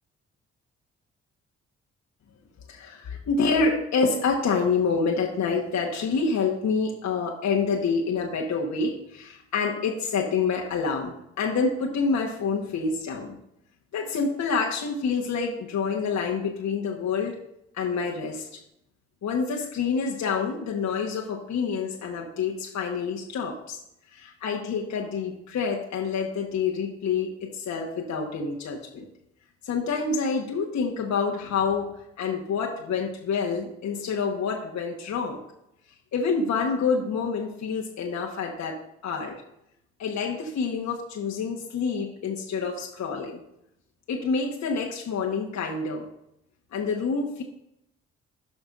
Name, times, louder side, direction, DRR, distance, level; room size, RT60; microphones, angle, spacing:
voice 1, 2.7-13.4 13.9-17.3 17.7-18.5 19.2-23.8 24.1-27.3 27.5-29.0 29.6-31.9 32.2-35.4 36.1-38.8 39.0-39.3 40.0-43.4 44.1-46.0 46.7-47.4, left 5 dB, 55° left, 0 dB, 1.4 m, -27 dB
17.0 x 6.0 x 2.6 m, 0.81 s
hypercardioid pair, 40°, 34 cm